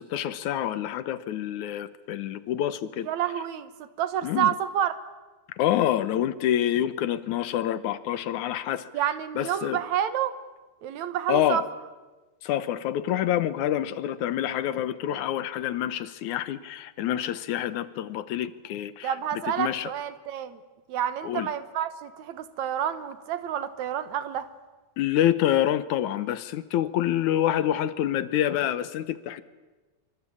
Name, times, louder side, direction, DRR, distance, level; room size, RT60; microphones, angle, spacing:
voice 1, 0.0-3.1 4.2-4.5 5.5-8.9 9.4-9.8 11.3-11.7 12.4-19.9 21.2-21.5 25.0-29.4, left 11 dB, 85° left, 14 dB, 2.5 m, -27 dB
voice 2, 3.1-5.0 8.9-10.3 10.8-11.6 19.0-20.6 20.9-24.5, right 10 dB, 75° right, 12 dB, 2.4 m, -29 dB
25.5 x 24.0 x 8.6 m, 1.2 s
omnidirectional pair, 3.4 m